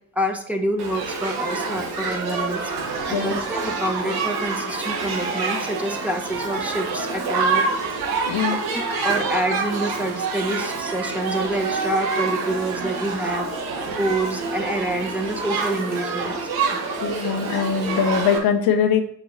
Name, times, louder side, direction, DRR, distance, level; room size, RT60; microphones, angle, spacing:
voice 1, 0.1-2.7 3.1-7.7 8.7-13.5 13.9-16.5, right 1 dB, 5° right, 2 dB, 1.3 m, -27 dB
Shout / Human group actions, 0.8-18.4, right 4 dB, 65° right, 1.5 m, -27 dB
voice 2, 8.2-8.6 17.0-19.0, left 7 dB, 65° left, 6 dB, 1.0 m, -21 dB
6.8 x 6.5 x 2.9 m, 0.67 s
hypercardioid pair, 45°, 39 cm